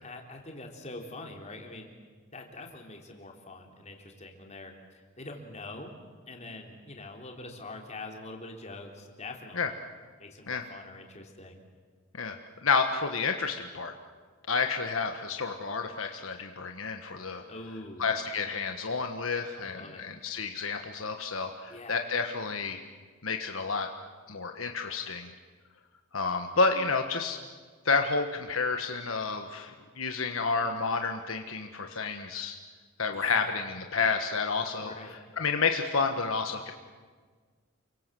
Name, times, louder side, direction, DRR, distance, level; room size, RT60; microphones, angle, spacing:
voice 1, 0.0-1.9 2.3-5.9 6.3-9.7 10.2-11.6 17.5-18.1 19.6-20.0 21.7-22.0 33.1-33.5 34.8-35.2, left 2 dB, 35° left, 2 dB, 3.8 m, -44 dB
voice 2, 12.6-13.9 14.5-17.4 18.0-22.8 23.2-23.9 24.3-25.3 26.1-27.4 27.8-32.6 33.0-36.7, left 4 dB, 70° left, 5 dB, 1.5 m, -30 dB
29.0 x 24.0 x 7.7 m, 1.5 s
head